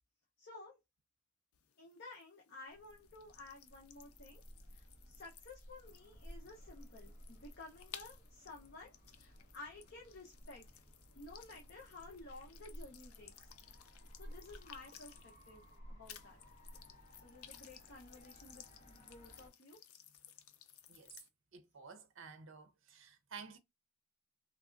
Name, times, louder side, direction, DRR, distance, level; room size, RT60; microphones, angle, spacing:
voice 1, 0.4-0.8 1.8-4.4 4.7-10.6 11.2-13.5 14.0-15.6 15.9-16.4 17.2-19.8, left 2 dB, 55° left, 0.8 m, -54 dB
sound 1, 1.5-15.8 16.0-21.3, left 10 dB, 85° left, 0.4 m, -59 dB
sound 2, 2.7-19.5, equal, 35° left, 1.2 m, -57 dB
voice 2, 21.5-23.6, right 5 dB, 65° right, 0.7 m, -53 dB
3.3 x 2.3 x 2.4 m
head